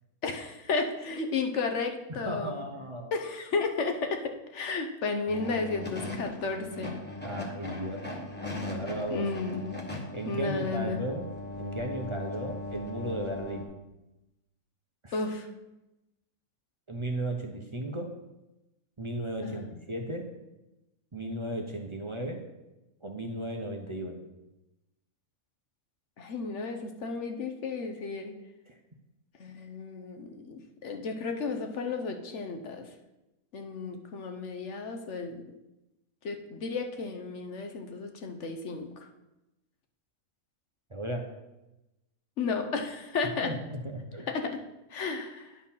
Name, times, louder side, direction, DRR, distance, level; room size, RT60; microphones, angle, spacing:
voice 1, 0.2-2.6 3.1-4.2 4.5-6.9 9.1-9.8 10.3-11.0 15.1-15.5 19.4-19.7 26.2-28.3 29.4-32.9 33.5-35.4 36.2-39.1 42.4-43.5 44.3-44.6 44.9-45.6, left 4 dB, 55° left, 5 dB, 1.1 m, -33 dB
voice 2, 2.1-3.2 7.2-8.0 8.7-9.3 10.1-11.3 11.6-13.7 15.0-15.2 16.9-18.1 19.0-20.3 21.1-22.4 23.0-24.2 28.7-28.8 40.9-41.3 43.4-44.3, right 1 dB, 30° right, 2 dB, 0.6 m, -35 dB
sound 1, 5.3-13.6, left 2 dB, 10° left, 1.1 m, -39 dB
9.9 x 4.5 x 5.5 m, 0.97 s
omnidirectional pair, 1.5 m